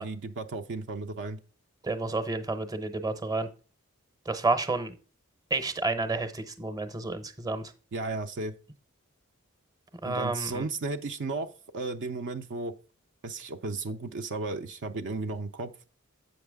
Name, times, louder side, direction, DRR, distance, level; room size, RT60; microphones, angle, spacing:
voice 1, 0.0-1.4 7.9-8.5 10.1-12.7 13.2-15.7, right 3 dB, 55° right, 0.5 m, -34 dB
voice 2, 1.8-3.5 4.3-4.9 5.5-7.7 10.0-10.6, right 3 dB, 15° right, 0.8 m, -30 dB
7.9 x 5.9 x 3.5 m
head